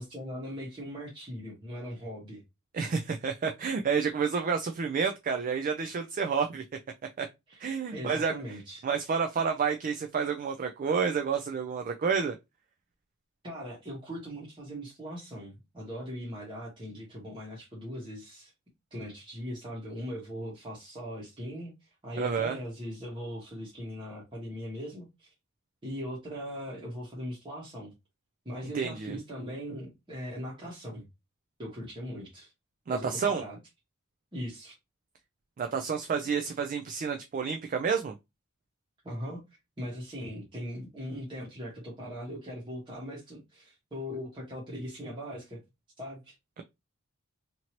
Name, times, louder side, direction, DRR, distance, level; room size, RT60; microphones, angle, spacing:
voice 1, 0.0-2.4 7.5-7.6 7.9-8.8 13.4-18.5 18.9-21.7 22.0-25.3 25.8-27.9 28.4-31.1 31.6-32.5 32.9-33.6 34.3-34.7 39.0-39.4 39.8-45.6 46.0-46.3, equal, 20° right, 1.0 m, -40 dB
voice 2, 2.7-6.6 7.2-7.3 7.6-8.3 8.8-12.4 22.2-22.6 28.7-29.2 32.9-33.4 35.6-38.1, right 6 dB, 40° right, 0.3 m, -29 dB
2.9 x 2.6 x 2.9 m
head